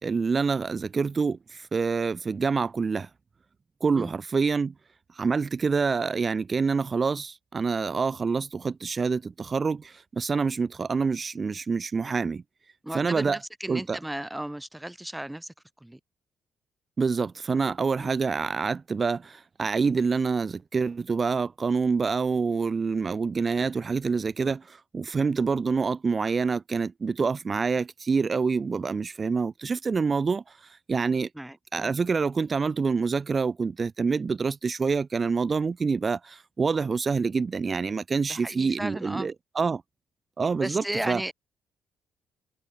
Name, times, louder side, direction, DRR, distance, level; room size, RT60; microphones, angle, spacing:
voice 1, 0.0-3.1 3.8-4.7 5.2-12.4 12.9-13.4 13.7-14.0 17.0-30.4 30.9-31.3 31.7-39.8 40.4-41.2, right 5 dB, 35° right, 1.4 m, -26 dB
voice 2, 12.8-16.0 18.0-18.1 31.3-31.9 38.3-39.3 40.6-41.3, right 1 dB, 5° right, 3.9 m, -35 dB
cardioid pair, 90°, 0 cm